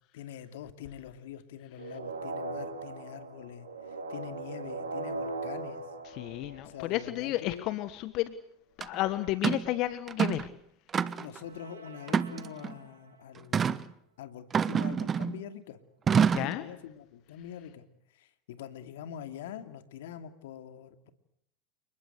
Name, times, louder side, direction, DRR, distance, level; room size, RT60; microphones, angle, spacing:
voice 1, 0.1-5.8 6.6-7.6 11.2-13.9 14.2-15.8 16.1-17.8 18.1-21.1, left 9 dB, 70° left, 10 dB, 2.6 m, -44 dB
sound 1, 1.7-7.1 11.4-13.1, right 3 dB, 90° right, 4.6 m, -40 dB
voice 2, 6.1-8.3 8.8-10.5 16.3-16.6, left 15 dB, 50° left, 14 dB, 1.4 m, -32 dB
sound 2, 8.8-8.9 9.4-9.7 10.1-10.5 10.9-11.4 12.1-12.7 13.5-13.8 14.5-15.4 16.1-16.6, right 7 dB, 30° right, 1.2 m, -27 dB
29.5 x 20.5 x 8.1 m, 0.72 s
hypercardioid pair, 85°, 0 cm